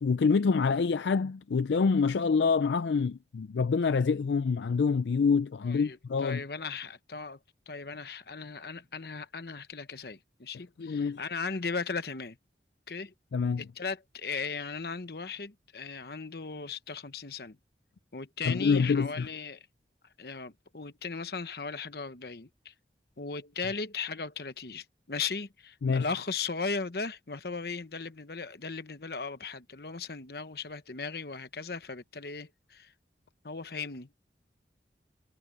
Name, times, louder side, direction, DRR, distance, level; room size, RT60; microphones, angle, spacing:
voice 1, 0.0-6.4 10.8-11.2 13.3-13.6 18.5-19.3 25.8-26.1, left 5 dB, 80° left, 0.4 m, -26 dB
voice 2, 5.6-7.4 7.7-12.4 12.9-13.1 13.6-17.6 18.1-19.7 20.2-22.7 23.2-32.9 33.4-34.1, left 4 dB, 60° left, 1.0 m, -37 dB
head